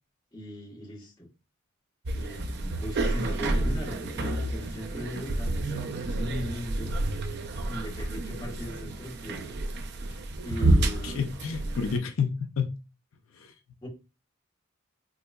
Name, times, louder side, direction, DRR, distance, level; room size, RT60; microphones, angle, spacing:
voice 1, 0.3-1.3 2.1-5.5 6.1-7.0 7.7-9.6 10.4-11.2 13.8-13.9, equal, 20° left, 1.4 m, -38 dB
sound 1, 2.1-12.0, right 2 dB, 55° right, 0.5 m, -29 dB
voice 2, 11.0-12.7 13.4-13.5, left 6 dB, 80° left, 0.5 m, -30 dB
3.7 x 2.9 x 2.3 m
head